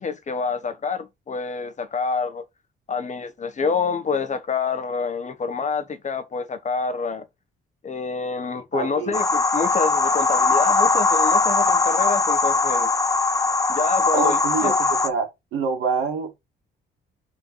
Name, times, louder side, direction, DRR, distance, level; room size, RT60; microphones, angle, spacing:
voice 1, 0.0-2.4 2.9-7.3 7.8-12.9 13.7-14.7, left 5 dB, 35° left, 1.0 m, -27 dB
voice 2, 8.7-9.2 14.1-16.4, right 4 dB, 85° right, 2.2 m, -26 dB
sound 1, 9.1-15.1, left 3 dB, 15° left, 0.8 m, -20 dB
5.6 x 3.9 x 5.4 m
cardioid pair, 90°, 20 cm